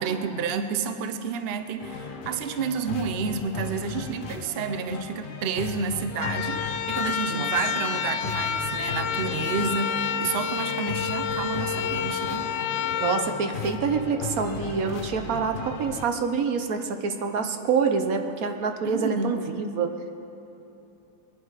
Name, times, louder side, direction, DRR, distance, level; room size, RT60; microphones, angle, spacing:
voice 1, 0.0-12.5 18.8-19.4, right 5 dB, 80° right, 8 dB, 0.5 m, -30 dB
sound 1, 1.8-16.1, left 5 dB, 55° left, 0.5 m, -37 dB
sound 2, 6.1-14.3, left 8 dB, 85° left, 1.5 m, -29 dB
voice 2, 13.0-19.9, right 5 dB, 55° right, 6 dB, 1.2 m, -26 dB
21.5 x 11.0 x 4.9 m, 3.0 s
omnidirectional pair, 2.0 m